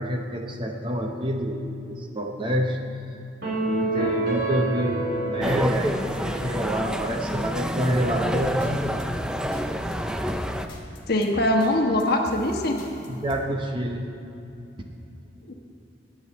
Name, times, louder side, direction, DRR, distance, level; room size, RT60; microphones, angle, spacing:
voice 1, 0.0-2.8 3.7-8.8 13.1-14.0, equal, 25° right, 2 dB, 0.8 m, -27 dB
sound 1, 3.4-6.9, right 2 dB, 55° right, 3.3 m, -28 dB
sound 2, 5.4-10.7, equal, 5° right, 0.4 m, -28 dB
sound 3, 7.9-13.4, left 1 dB, 25° left, 1.7 m, -41 dB
voice 2, 11.1-12.8 15.5-15.6, left 1 dB, 50° left, 2 dB, 1.2 m, -22 dB
17.0 x 9.4 x 4.2 m, 2.7 s
head